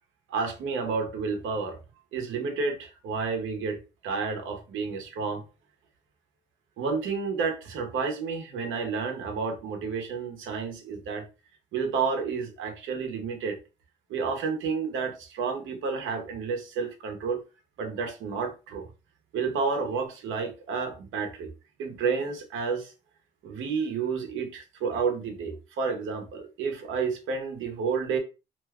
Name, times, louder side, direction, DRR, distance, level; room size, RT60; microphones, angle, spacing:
voice 1, 0.3-1.8 2.1-5.4 6.8-11.2 11.7-13.6 14.1-17.4 17.8-18.9 19.3-21.5 21.8-22.9 23.4-28.2, right 5 dB, 85° right, 0.9 m, -30 dB
2.6 x 2.3 x 3.4 m
cardioid pair, 90°, 20 cm